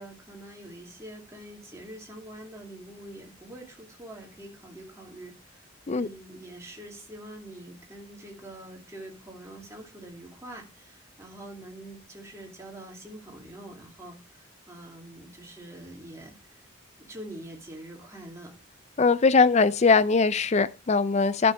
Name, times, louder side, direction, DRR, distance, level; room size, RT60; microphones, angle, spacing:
voice 1, 0.0-16.6 17.0-18.6, right 1 dB, 15° right, 2.6 m, -45 dB
voice 2, 19.0-21.5, left 4 dB, 35° left, 0.5 m, -21 dB
11.5 x 5.4 x 4.7 m
head